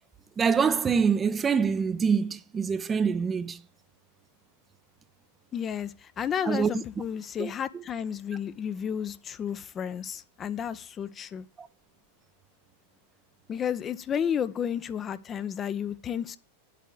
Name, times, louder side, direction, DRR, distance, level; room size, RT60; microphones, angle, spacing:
voice 1, 0.4-3.6 6.5-6.7 7.4-7.8 11.6-11.7, right 6 dB, 20° right, 0.8 m, -25 dB
voice 2, 5.5-11.4 13.5-16.4, left 8 dB, 25° left, 0.8 m, -32 dB
10.5 x 8.5 x 7.8 m
figure-of-eight pair, 90°, 0 cm